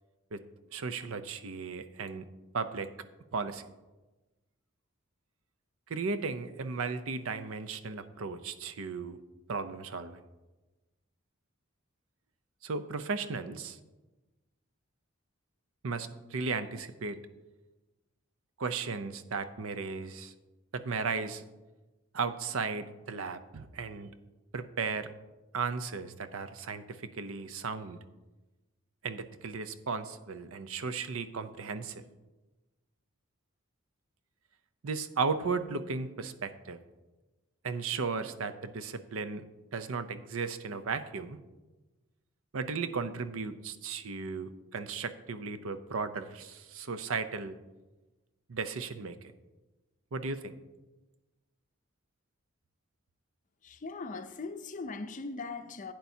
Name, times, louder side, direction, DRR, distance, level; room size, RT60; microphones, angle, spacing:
voice 1, 0.7-2.3 2.5-2.9 3.3-3.6 5.9-9.2 9.5-10.2 12.6-13.8 15.8-17.2 18.6-20.3 20.7-21.4 22.1-24.1 24.5-25.1 25.5-28.0 29.0-32.0 34.8-36.8 37.6-39.4 39.7-41.4 42.5-47.6 48.5-49.2 50.1-50.5, right 4 dB, 75° right, 0.6 m, -35 dB
voice 2, 53.6-55.9, left 3 dB, 40° left, 0.5 m, -40 dB
11.5 x 9.2 x 2.8 m
head